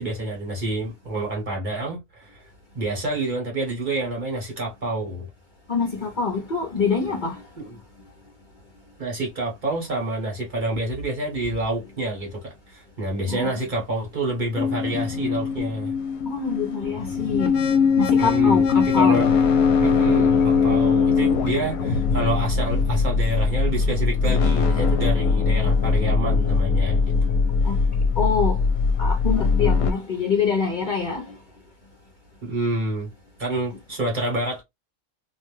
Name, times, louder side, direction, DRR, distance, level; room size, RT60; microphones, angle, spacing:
voice 1, 0.0-2.5 2.7-5.3 7.0-7.1 7.6-7.8 9.0-15.9 18.2-19.3 19.8-27.3 32.4-33.1 33.4-34.6, right 2 dB, 40° right, 0.9 m, -28 dB
voice 2, 5.7-7.4 13.3-13.5 16.3-17.5 18.0-19.3 27.6-27.8 28.2-28.6 29.0-31.3, left 5 dB, 50° left, 0.6 m, -25 dB
sound 1, 14.6-29.9, left 5 dB, 70° left, 0.9 m, -21 dB
2.5 x 2.2 x 3.0 m
omnidirectional pair, 1.5 m